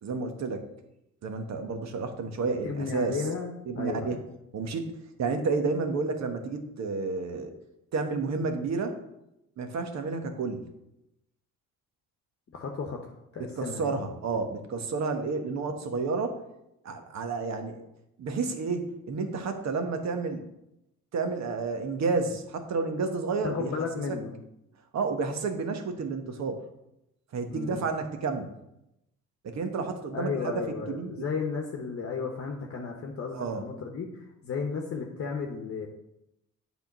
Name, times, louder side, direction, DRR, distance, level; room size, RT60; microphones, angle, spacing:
voice 1, 0.0-0.7 1.2-3.2 3.7-4.2 4.5-4.9 5.2-7.5 7.9-9.0 9.6-10.6 13.6-16.4 16.8-17.8 18.2-20.4 21.1-23.7 24.1-24.2 24.9-26.6 27.3-28.5 29.4-30.5 30.9-31.2 33.3-33.6, right 4 dB, 60° right, 6 dB, 1.2 m, -30 dB
voice 2, 2.6-4.3 12.5-14.0 23.4-24.3 27.5-27.8 30.1-35.9, left 5 dB, 50° left, 2 dB, 1.0 m, -34 dB
8.3 x 3.7 x 6.0 m, 0.85 s
cardioid pair, 90°, 30 cm